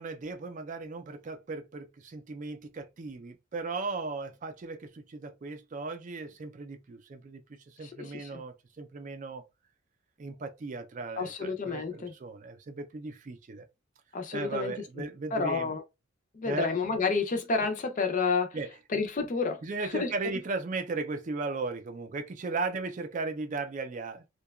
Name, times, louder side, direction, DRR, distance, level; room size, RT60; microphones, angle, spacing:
voice 1, 0.0-9.4 10.2-13.7 14.3-15.8 16.4-16.8 18.5-18.7 19.6-24.2, right 3 dB, 35° right, 0.4 m, -36 dB
voice 2, 7.8-8.3 11.2-12.1 14.1-14.7 15.3-15.8 16.3-18.6 18.9-20.1, left 4 dB, 40° left, 0.5 m, -30 dB
2.7 x 2.2 x 2.2 m
head